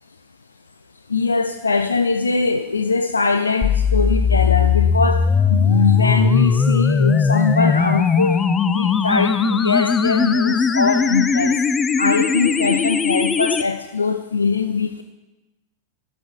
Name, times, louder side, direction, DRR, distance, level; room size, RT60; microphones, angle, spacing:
voice 1, 1.1-8.4 8.7-11.6 12.0-15.0, left 4 dB, 75° left, 9 dB, 0.4 m, -21 dB
sound 1, 3.6-13.6, left 5 dB, 20° left, 0.5 m, -18 dB
11.5 x 6.2 x 7.1 m, 1.1 s
figure-of-eight pair, 90°, 0 cm